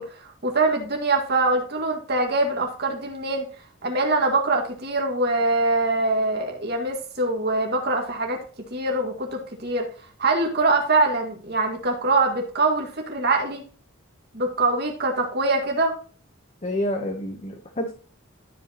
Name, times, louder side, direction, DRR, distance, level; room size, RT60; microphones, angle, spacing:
voice 1, 0.0-3.5 3.8-9.9 10.2-13.6 14.3-16.0, right 2 dB, 50° right, 2 dB, 1.9 m, -23 dB
voice 2, 16.6-17.9, left 1 dB, 30° left, 4 dB, 0.8 m, -28 dB
12.5 x 5.1 x 2.8 m, 0.41 s
head